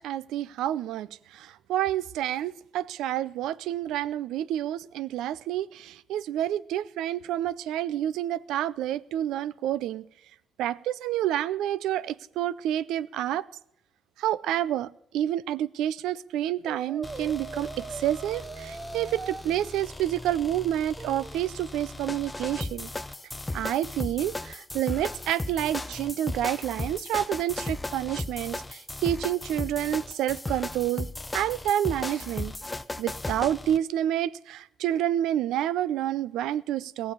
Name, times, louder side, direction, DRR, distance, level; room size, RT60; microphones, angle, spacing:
voice 1, 0.0-10.0 10.6-13.5 14.2-22.9 23.5-31.1 31.3-32.5 33.0-37.1, right 12 dB, 90° right, 0.4 m, -29 dB
Brass instrument, 16.7-19.4 21.0-21.5, right 4 dB, 35° right, 0.8 m, -40 dB
sound 1, 17.0-33.8, left 2 dB, 15° left, 0.6 m, -36 dB
16.0 x 7.1 x 9.7 m
cardioid pair, 90°, 0 cm